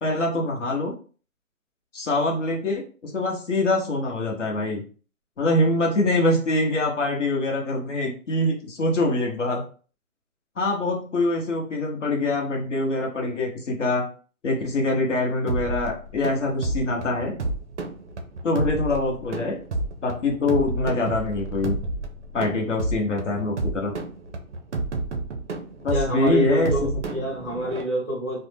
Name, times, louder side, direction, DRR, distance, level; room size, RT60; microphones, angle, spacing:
voice 1, 0.0-0.9 1.9-4.8 5.4-9.6 10.6-14.1 14.4-17.4 18.4-19.6 20.0-21.8 22.3-23.9 25.8-26.9 27.1-27.2, left 2 dB, 55° left, 0 dB, 0.9 m, -24 dB
sound 1, 15.5-27.8, right 2 dB, 55° right, 0.5 m, -31 dB
voice 2, 25.9-28.5, equal, 5° left, -13 dB, 0.7 m, -27 dB
2.6 x 2.1 x 3.2 m, 0.40 s
hypercardioid pair, 170°, 43 cm